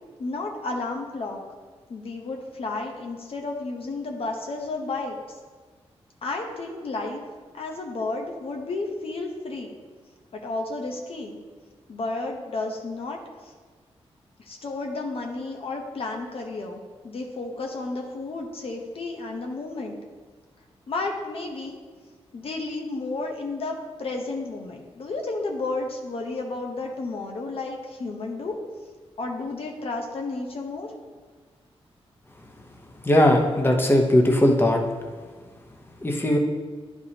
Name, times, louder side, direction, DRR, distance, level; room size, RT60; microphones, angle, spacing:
voice 1, 0.2-1.4 1.9-5.4 6.2-7.2 7.5-9.7 10.3-11.4 11.9-13.5 14.4-20.0 20.9-21.8 22.3-28.6 29.2-30.9, left 3 dB, 65° left, 1 dB, 0.9 m, -32 dB
voice 2, 33.0-34.8 36.0-36.4, left 1 dB, 20° left, 2 dB, 0.9 m, -19 dB
9.8 x 4.7 x 2.9 m, 1.4 s
cardioid pair, 70°, 11 cm